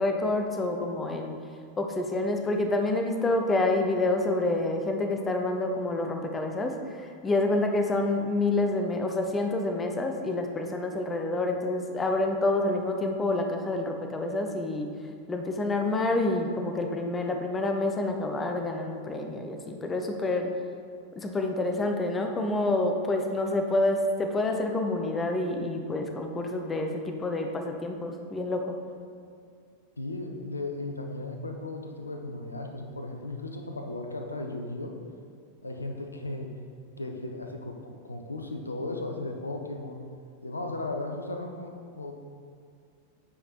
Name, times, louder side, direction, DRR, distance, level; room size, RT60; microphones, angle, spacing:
voice 1, 0.0-1.4 1.8-14.9 15.3-20.5 21.2-28.8, left 2 dB, 15° left, 4 dB, 0.6 m, -28 dB
voice 2, 30.0-35.0 35.6-36.6 37.0-40.0 40.4-42.1, left 2 dB, 80° left, 4 dB, 0.6 m, -36 dB
8.6 x 5.2 x 2.9 m, 2.2 s
figure-of-eight pair, 90°, 0 cm